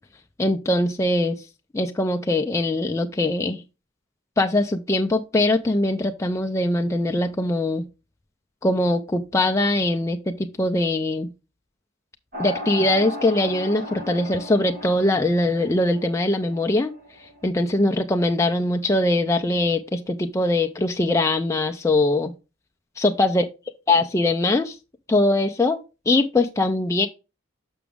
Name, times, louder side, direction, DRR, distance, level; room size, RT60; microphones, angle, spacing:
voice 1, 0.4-1.4 1.7-3.6 4.4-7.9 8.6-11.3 12.4-16.9 17.2-22.3 23.0-23.4 23.9-24.8 25.1-25.8 26.1-27.1, left 2 dB, 15° left, 0.3 m, -22 dB
sound 1, 12.3-17.5, left 1 dB, 40° right, 1.1 m, -36 dB
6.1 x 6.0 x 3.4 m
head